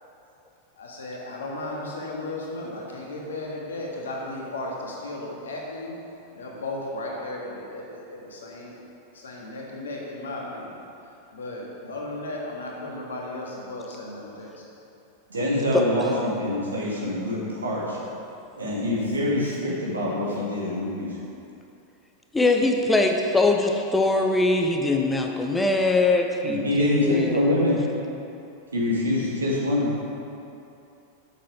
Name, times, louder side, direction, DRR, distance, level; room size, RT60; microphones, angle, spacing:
voice 1, 0.8-5.9 6.3-8.7 9.2-10.8 11.3-14.5 19.4-19.6, left 2 dB, 65° left, -2 dB, 1.5 m, -35 dB
voice 2, 15.3-18.0 18.6-21.1 26.4-27.8 28.7-29.9, left 1 dB, 75° right, -6 dB, 2.1 m, -25 dB
voice 3, 22.3-27.4, left 2 dB, 10° left, 3 dB, 0.6 m, -22 dB
7.4 x 7.0 x 4.9 m, 2.8 s
figure-of-eight pair, 90°, 0 cm